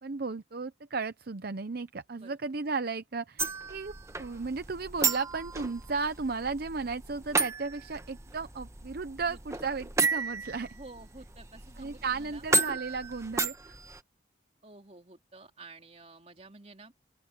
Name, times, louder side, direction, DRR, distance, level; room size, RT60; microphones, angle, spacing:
voice 1, 0.0-10.7 11.8-13.8, right 4 dB, 55° right, 0.7 m, -35 dB
sound 1, 3.4-14.0, right 3 dB, 15° right, 1.3 m, -33 dB
voice 2, 3.5-3.8 9.3-9.6 10.6-12.5 14.6-16.9, right 3 dB, 35° right, 3.3 m, -51 dB
open air
head